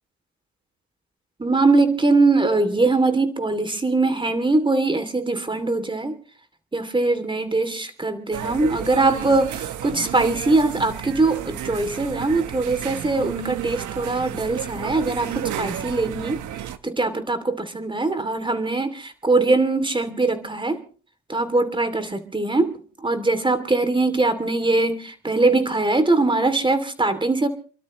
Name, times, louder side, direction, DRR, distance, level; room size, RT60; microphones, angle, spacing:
voice 1, 1.4-6.2 6.7-16.4 16.8-20.8 21.3-27.5, right 3 dB, 15° right, 11 dB, 2.8 m, -22 dB
sound 1, 8.3-16.8, right 11 dB, 80° right, 1.2 m, -32 dB
29.0 x 12.5 x 3.1 m, 0.39 s
cardioid pair, 90°, 30 cm